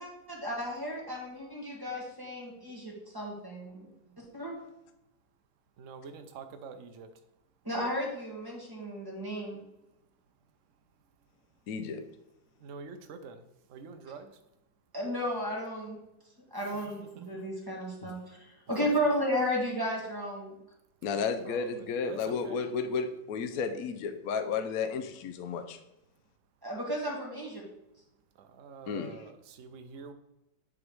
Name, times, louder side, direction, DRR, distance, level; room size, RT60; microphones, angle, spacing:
voice 1, 0.0-3.9 4.3-4.5 7.6-9.6 14.9-16.0 16.5-18.4 18.7-20.5 26.6-27.6, equal, 10° right, -3 dB, 1.7 m, -33 dB
voice 2, 5.8-7.1 12.6-14.4 17.2-17.3 21.4-22.6 28.4-30.1, right 5 dB, 60° right, 7 dB, 0.8 m, -46 dB
voice 3, 11.7-12.0 18.0-18.1 21.0-25.8 28.9-29.1, left 5 dB, 65° left, 7 dB, 0.9 m, -33 dB
9.6 x 3.8 x 4.7 m, 0.91 s
omnidirectional pair, 2.1 m